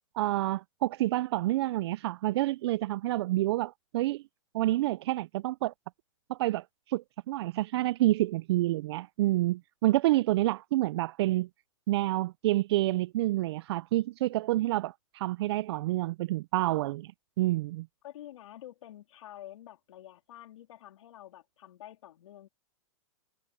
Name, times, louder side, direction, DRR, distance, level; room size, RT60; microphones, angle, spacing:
voice 1, 0.2-4.2 4.5-5.7 6.3-11.5 11.9-17.1 17.4-17.9, right 16 dB, 50° right, 0.4 m, -28 dB
voice 2, 18.0-22.5, left 13 dB, 70° left, 3.1 m, -48 dB
hypercardioid pair, 140°, 17 cm